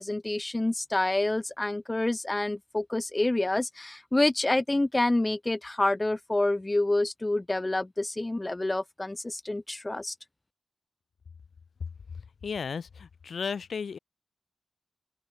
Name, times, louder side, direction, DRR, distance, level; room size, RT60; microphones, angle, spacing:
voice 1, 0.0-10.1, left 2 dB, 20° left, 4.2 m, -28 dB
voice 2, 12.4-14.0, left 6 dB, 75° left, 7.4 m, -34 dB
open air
wide cardioid pair, 95°, 0 cm